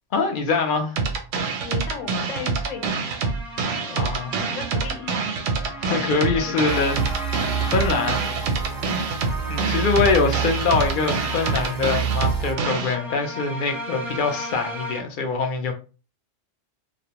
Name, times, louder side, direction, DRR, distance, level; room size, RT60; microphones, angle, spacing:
voice 1, 0.1-1.0 3.9-4.3 5.8-7.0 7.6-8.2 8.8-9.0 9.5-15.7, left 4 dB, 65° left, 0.5 m, -24 dB
sound 1, 1.0-13.0, right 4 dB, 80° right, 0.9 m, -26 dB
voice 2, 1.6-3.1 3.7-4.1 4.4-5.3 5.9-6.6 8.7-8.8, left 6 dB, 85° left, 1.0 m, -36 dB
sound 2, 1.6-15.0, equal, ahead, 0.4 m, -36 dB
sound 3, 6.7-12.5, right 7 dB, 55° right, 0.6 m, -29 dB
2.4 x 2.1 x 2.8 m
omnidirectional pair, 1.3 m